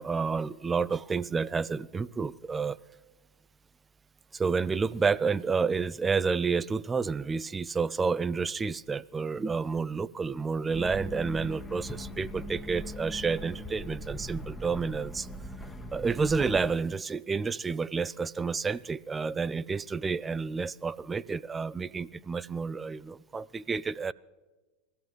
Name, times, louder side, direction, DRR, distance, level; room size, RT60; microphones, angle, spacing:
voice 1, 0.0-2.8 4.3-15.3 15.9-24.1, right 5 dB, 20° right, 20 dB, 0.4 m, -30 dB
sound 1, 10.7-16.7, equal, 5° left, 1.2 m, -40 dB
21.0 x 14.0 x 3.2 m, 1.2 s
hypercardioid pair, 90°, 0 cm